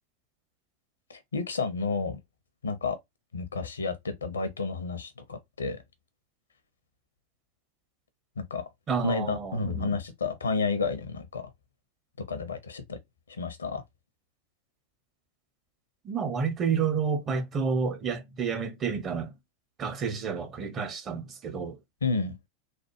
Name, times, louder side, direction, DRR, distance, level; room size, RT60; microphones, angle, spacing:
voice 1, 1.1-2.2 2.6-3.0 3.3-5.8 8.4-8.6 9.0-11.4 12.3-13.0 13.3-13.8 22.0-22.4, left 4 dB, 70° left, 0.6 m, -31 dB
voice 2, 8.9-9.9 16.0-19.3 19.8-21.8, right 6 dB, 25° right, 0.8 m, -30 dB
3.3 x 2.0 x 2.9 m
figure-of-eight pair, 90°, 0 cm